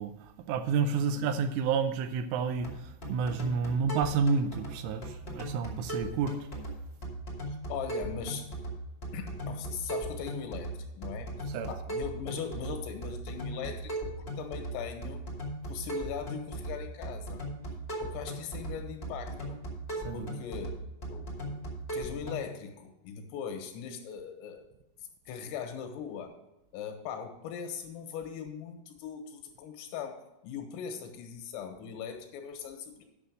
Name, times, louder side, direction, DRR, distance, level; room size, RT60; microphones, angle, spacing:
voice 1, 0.0-6.5 11.5-11.7 20.0-20.4, right 5 dB, 80° right, 9 dB, 3.0 m, -30 dB
voice 2, 1.0-1.3 7.5-8.5 9.1-11.3 11.7-14.1 14.4-15.2 15.7-17.4 18.0-19.6 20.1-20.8 21.1-21.6 21.9-24.7 25.3-26.3 26.7-33.0, left 7 dB, 80° left, 5 dB, 3.9 m, -40 dB
sound 1, 2.6-22.4, right 1 dB, 40° left, 0.8 m, -38 dB
9.9 x 6.4 x 6.2 m, 0.90 s
omnidirectional pair, 5.9 m